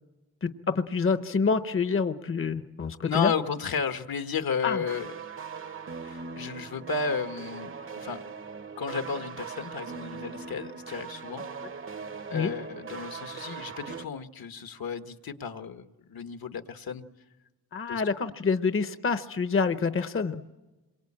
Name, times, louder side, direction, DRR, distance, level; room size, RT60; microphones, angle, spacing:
voice 1, 0.4-3.3 4.6-4.8 12.3-12.5 17.7-20.4, left 5 dB, 35° left, 10 dB, 0.9 m, -27 dB
voice 2, 3.0-5.1 6.0-7.7 8.0-8.2 8.8-11.4 12.3-17.0 17.9-18.0, left 5 dB, 70° left, 8 dB, 1.5 m, -33 dB
sound 1, 4.8-14.0, right 5 dB, 35° right, 0.8 m, -40 dB
27.0 x 23.5 x 8.7 m, 1.1 s
wide cardioid pair, 170°, 37 cm